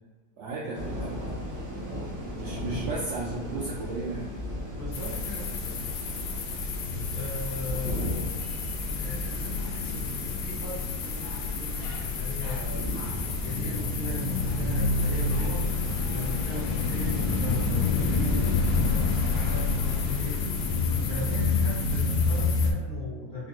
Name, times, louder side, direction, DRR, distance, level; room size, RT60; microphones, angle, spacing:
voice 1, 0.4-1.2 2.4-4.3 8.4-8.7, right 3 dB, 65° right, -5 dB, 0.7 m, -35 dB
sound 1, 0.7-18.5, equal, 90° right, 1.8 m, -38 dB
voice 2, 4.8-5.8 7.1-8.4 8.9-12.9 13.4-15.7 16.1-20.4 21.0-23.5, left 1 dB, 35° left, -12 dB, 1.5 m, -38 dB
sound 2, 4.9-22.7, left 4 dB, 90° left, 1.2 m, -28 dB
4.5 x 2.3 x 2.9 m, 1.3 s
omnidirectional pair, 1.7 m